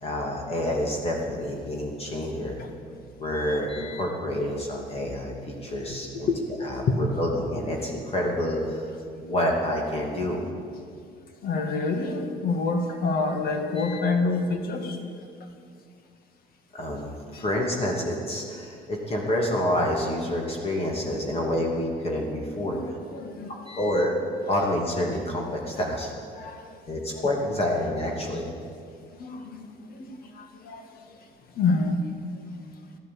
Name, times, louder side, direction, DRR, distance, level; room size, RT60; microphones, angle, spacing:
voice 1, 0.0-2.6 3.2-6.3 6.6-8.9 9.2-10.4 13.8-14.0 16.7-22.8 23.7-24.1 24.5-26.1 26.9-28.4, left 1 dB, 35° left, -1 dB, 2.7 m, -28 dB
voice 2, 11.4-15.0 17.3-17.4 22.6-23.5 26.4-26.8 29.2-30.9 31.6-32.0, left 3 dB, 60° left, 5 dB, 2.1 m, -27 dB
14.0 x 11.5 x 8.6 m, 2.3 s
cardioid pair, 110°, 17 cm